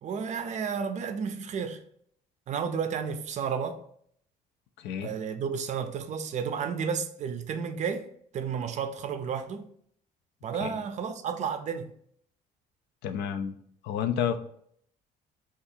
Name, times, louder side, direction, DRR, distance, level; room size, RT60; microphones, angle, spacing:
voice 1, 0.0-1.8 2.5-3.8 5.0-8.1 8.3-9.7 10.4-11.9, right 6 dB, 45° right, 0.4 m, -32 dB
voice 2, 4.8-5.1 10.6-10.8 13.0-13.6 13.8-14.4, left 8 dB, 80° left, 0.4 m, -30 dB
2.7 x 2.4 x 4.2 m
cardioid pair, 110°, 17 cm